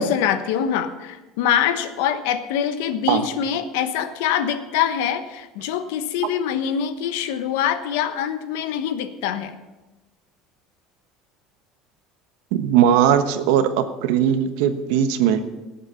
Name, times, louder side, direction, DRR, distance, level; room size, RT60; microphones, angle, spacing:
voice 1, 0.0-9.5, left 9 dB, 85° left, 9 dB, 1.1 m, -24 dB
voice 2, 12.5-15.4, right 9 dB, 80° right, 9 dB, 1.2 m, -19 dB
18.0 x 8.1 x 5.8 m, 1.1 s
cardioid pair, 160°, 0 cm